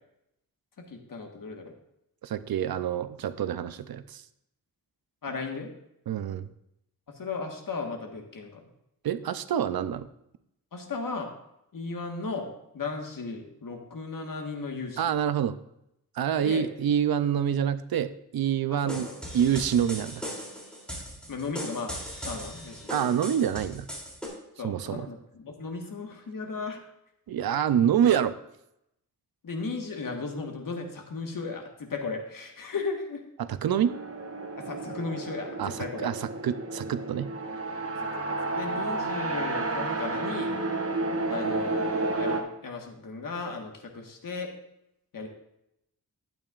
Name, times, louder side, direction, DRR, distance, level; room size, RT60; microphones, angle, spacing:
voice 1, 0.8-1.7 5.2-5.7 7.1-8.7 10.7-11.3 11.7-15.0 16.4-16.7 18.7-19.2 21.3-23.0 24.6-26.8 29.4-33.2 34.6-36.1 38.0-40.6 41.3-44.5 45.1-45.3, left 4 dB, 65° left, 3 dB, 1.5 m, -36 dB
voice 2, 2.2-4.2 6.1-6.5 9.0-10.1 15.0-15.6 16.2-19.1 19.3-20.2 22.9-23.9 24.6-25.1 27.3-28.3 33.5-33.9 35.6-35.7 36.0-36.2 36.4-37.3, right 9 dB, 85° right, 13 dB, 0.6 m, -26 dB
sound 1, 18.9-24.3, equal, 5° left, 2.9 m, -38 dB
sound 2, 33.8-42.4, right 2 dB, 40° right, 1.1 m, -31 dB
12.0 x 8.9 x 2.5 m, 0.81 s
wide cardioid pair, 110°, 35 cm